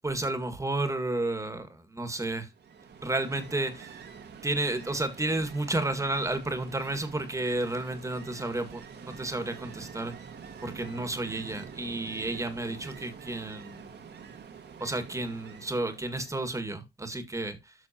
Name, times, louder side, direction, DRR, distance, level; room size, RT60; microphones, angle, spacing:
voice 1, 0.0-2.5 3.0-4.0 4.4-10.3 10.6-13.9 14.8-17.7, right 2 dB, 15° right, 1.9 m, -32 dB
Ocean, 2.5-16.6, right 6 dB, 60° right, 1.8 m, -47 dB
13.0 x 6.3 x 2.9 m
cardioid pair, 90°, 20 cm